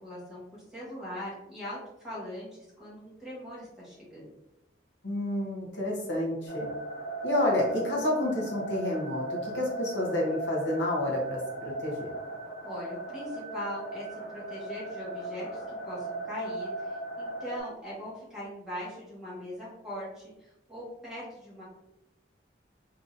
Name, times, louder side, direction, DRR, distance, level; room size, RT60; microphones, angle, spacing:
voice 1, 0.0-1.8 2.0-4.3 12.6-14.0 14.3-21.6, left 1 dB, 5° right, -9 dB, 1.4 m, -41 dB
voice 2, 5.0-6.7 7.2-12.1, left 1 dB, 70° left, -2 dB, 0.8 m, -29 dB
sound 1, 6.5-17.6, right 2 dB, 15° left, 1.5 m, -37 dB
3.7 x 2.8 x 2.5 m, 0.93 s
head